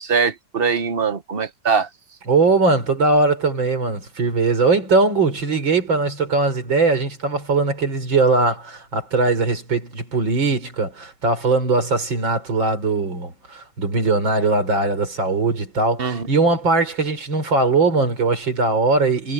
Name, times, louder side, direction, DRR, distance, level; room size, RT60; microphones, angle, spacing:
voice 1, 0.0-1.9 16.0-16.3, right 5 dB, 40° right, 1.0 m, -22 dB
voice 2, 2.3-19.3, right 3 dB, 75° right, 5.2 m, -20 dB
omnidirectional pair, 2.1 m